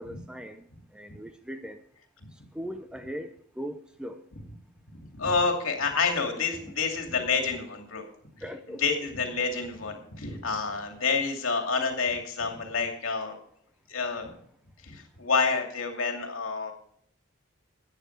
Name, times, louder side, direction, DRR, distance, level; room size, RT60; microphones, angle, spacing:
voice 1, 0.0-1.8 2.5-4.2 8.4-8.8, equal, 5° right, 0.5 m, -39 dB
voice 2, 5.1-8.1 8.8-13.4 13.9-14.3 14.8-16.7, left 4 dB, 75° left, 2.4 m, -28 dB
13.5 x 9.0 x 4.6 m
head